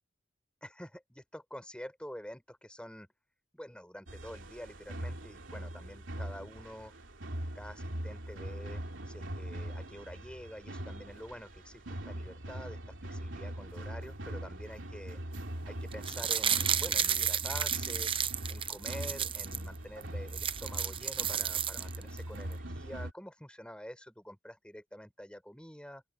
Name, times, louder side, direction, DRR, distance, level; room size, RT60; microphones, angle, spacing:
voice 1, 0.6-3.1 3.5-6.9 7.5-15.2 15.6-18.1 18.5-26.0, equal, 5° left, 4.8 m, -47 dB
sound 1, 4.1-23.1, right 1 dB, 75° right, 3.1 m, -42 dB
sound 2, 15.9-19.6 20.0-20.1 20.3-22.2 22.5-22.6, right 8 dB, 30° right, 0.7 m, -32 dB
open air
head